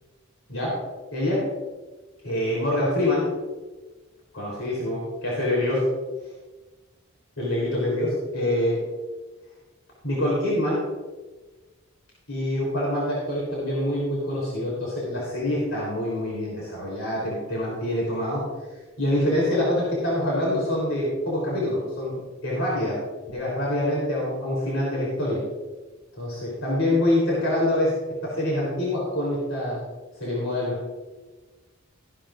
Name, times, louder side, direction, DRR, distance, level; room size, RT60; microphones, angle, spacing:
voice 1, 0.5-0.8 1.1-1.5 2.2-3.3 4.3-5.9 7.4-8.8 10.0-10.8 12.3-18.5 19.0-23.0 23.3-25.4 26.2-28.0 28.2-29.8 30.2-30.8, left 1 dB, 75° left, -5 dB, 3.6 m, -25 dB
14.5 x 11.0 x 2.5 m, 1.2 s
head